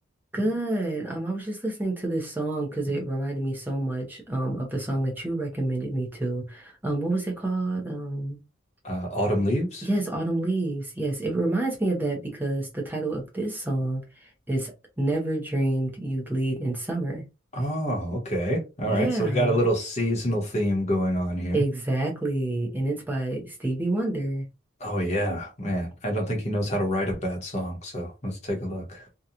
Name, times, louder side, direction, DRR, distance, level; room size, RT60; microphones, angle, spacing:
voice 1, 0.3-8.4 9.8-14.7 15.0-17.2 18.9-19.6 21.5-24.5, right 2 dB, 10° right, 0.6 m, -28 dB
voice 2, 8.8-9.9 17.5-21.6 24.8-29.1, equal, 30° left, 0.9 m, -27 dB
2.8 x 2.2 x 2.4 m
head